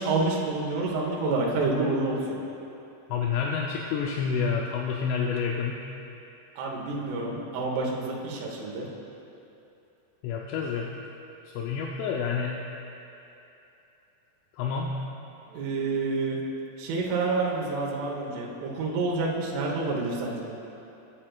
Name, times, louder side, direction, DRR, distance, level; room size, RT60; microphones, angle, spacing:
voice 1, 0.0-2.4 6.6-8.9 15.5-16.4 16.8-20.4, right 3 dB, 80° right, -2 dB, 3.6 m, -28 dB
voice 2, 3.1-5.8 10.2-10.9 11.5-12.6 14.5-14.9, left 6 dB, 80° left, -1 dB, 3.1 m, -28 dB
19.0 x 8.9 x 2.4 m, 2.9 s
omnidirectional pair, 5.8 m